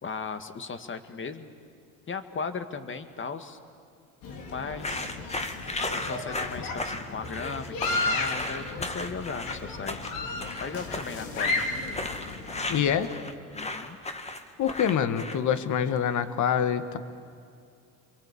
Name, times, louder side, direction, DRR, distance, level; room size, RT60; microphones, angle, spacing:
voice 1, 0.0-1.5 2.1-3.6 4.5-5.1 5.9-10.1 10.6-11.6 13.5-14.0, left 5 dB, 35° left, 10 dB, 2.0 m, -37 dB
sound 1, 4.2-12.9, left 3 dB, 70° left, 3.7 m, -34 dB
sound 2, 4.8-15.6, left 2 dB, 20° left, 2.0 m, -35 dB
voice 2, 12.7-13.1 14.6-17.0, left 8 dB, 55° left, 12 dB, 1.7 m, -25 dB
28.5 x 23.5 x 8.5 m, 2.3 s
hypercardioid pair, 70°, 35 cm